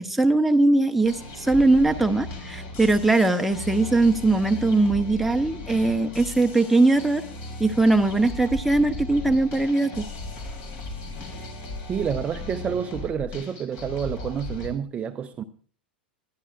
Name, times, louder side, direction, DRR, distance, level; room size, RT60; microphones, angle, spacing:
voice 1, 0.0-7.2 7.6-10.0, right 2 dB, ahead, 0.9 m, -20 dB
sound 1, 1.0-14.7, left 2 dB, 45° left, 3.4 m, -37 dB
voice 2, 11.9-15.4, right 7 dB, 25° right, 0.6 m, -29 dB
21.0 x 12.0 x 2.5 m
figure-of-eight pair, 90°, 5 cm